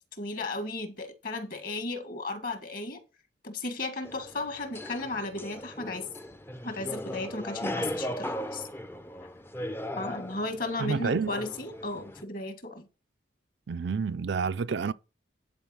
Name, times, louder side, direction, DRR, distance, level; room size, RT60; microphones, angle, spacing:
voice 1, 0.2-3.0 3.4-6.1 6.6-8.7 10.0-12.9, left 2 dB, 45° left, 1.5 m, -35 dB
sound 1, 4.0-12.2, left 1 dB, 10° left, 0.5 m, -38 dB
voice 2, 10.8-11.3 13.7-14.9, right 5 dB, 60° right, 0.4 m, -29 dB
10.5 x 4.3 x 6.2 m
head